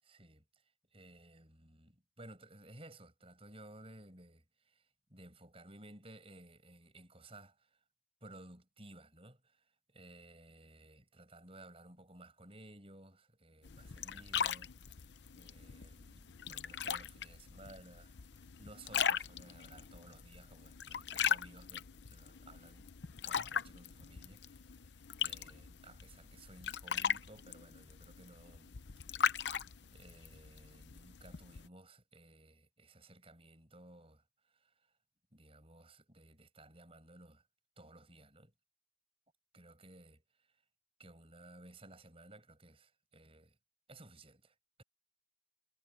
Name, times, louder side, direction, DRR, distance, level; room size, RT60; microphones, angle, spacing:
voice 1, 0.0-0.6 0.9-7.8 8.2-15.1 15.3-22.9 23.3-29.5 29.8-34.9 35.3-37.4 37.8-38.5 39.5-40.6 41.0-43.6 43.9-44.8, right 1 dB, 30° right, 7.9 m, -57 dB
sound 1, 13.6-31.7, left 8 dB, 70° left, 0.7 m, -39 dB
head